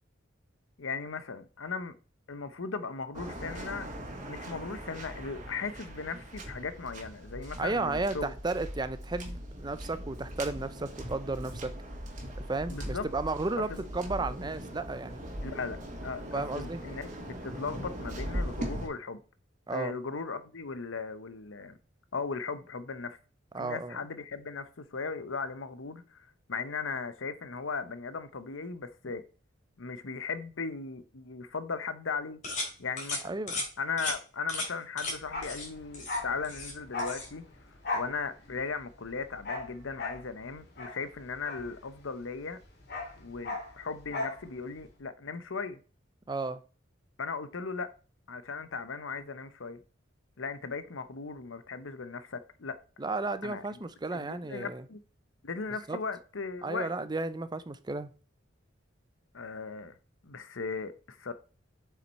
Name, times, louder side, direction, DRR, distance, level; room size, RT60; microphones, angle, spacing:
voice 1, 0.8-1.9 2.3-3.9 4.3-8.3 12.7-13.1 13.6-13.8 15.4-19.2 19.7-21.8 22.1-23.2 23.6-29.2 29.8-32.4 32.8-33.3 33.8-37.4 37.9-42.6 43.2-45.8 47.2-47.9 48.3-49.8 50.4-52.8 53.4-53.6 54.1-55.0 55.4-57.1 59.3-60.0 60.2-61.3, left 4 dB, 90° left, 0.9 m, -37 dB
Waves surf, 3.1-18.9, equal, 40° right, 2.2 m, -40 dB
voice 2, 7.6-11.7 12.5-15.2 16.3-16.8 19.7-20.0 23.5-24.0 33.2-33.5 46.3-46.6 53.0-54.8 55.9-56.0 56.6-58.1, right 3 dB, 20° right, 0.6 m, -33 dB
sound 1, 32.4-32.7 33.0-33.2 33.5-33.7 34.0-34.1 34.5-34.7 35.0-35.1 35.4-35.7 35.9-36.7 37.0-37.3, left 2 dB, 40° left, 3.3 m, -35 dB
Bark, 35.2-42.2 42.5-44.4 44.7-44.8, left 2 dB, 55° left, 2.6 m, -38 dB
7.8 x 5.8 x 4.2 m
head